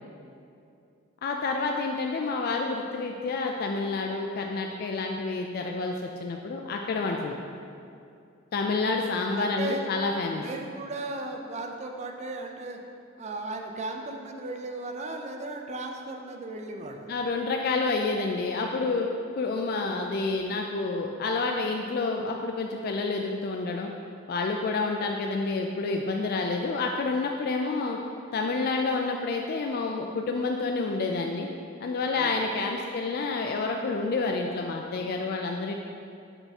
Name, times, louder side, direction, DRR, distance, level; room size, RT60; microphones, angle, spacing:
voice 1, 1.2-7.4 8.5-10.4 17.1-19.1 19.4-23.9 24.3-28.0 28.3-31.5 31.8-35.7, left 3 dB, 50° left, 2 dB, 0.3 m, -29 dB
voice 2, 9.1-9.9 10.4-12.8 13.2-17.1 32.2-32.4, right 2 dB, 35° right, 3 dB, 0.4 m, -36 dB
6.8 x 3.5 x 4.2 m, 2.5 s
head